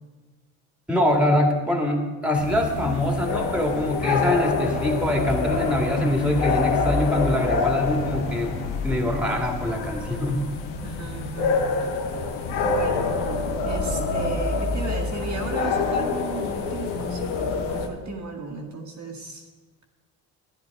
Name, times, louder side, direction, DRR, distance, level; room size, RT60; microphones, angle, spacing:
voice 1, 0.9-10.5, left 1 dB, 5° right, 3 dB, 2.0 m, -24 dB
sound 1, 2.4-17.9, left 4 dB, 90° left, 1.1 m, -26 dB
voice 2, 10.8-11.6 12.6-13.1 13.6-19.5, right 4 dB, 45° right, 1 dB, 1.7 m, -35 dB
11.5 x 9.4 x 4.7 m, 1.3 s
supercardioid pair, 60°, 40 cm